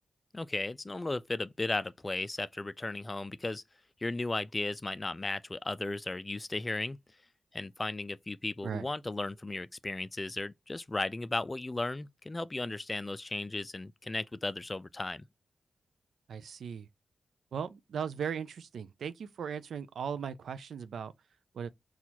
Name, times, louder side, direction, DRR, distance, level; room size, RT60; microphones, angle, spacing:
voice 1, 0.3-3.6 4.0-7.0 7.5-15.3, left 2 dB, 30° left, 0.3 m, -35 dB
voice 2, 16.3-16.9 17.5-21.1 21.5-21.7, right 7 dB, 80° right, 0.3 m, -38 dB
4.1 x 2.3 x 2.8 m
cardioid pair, 50°, 0 cm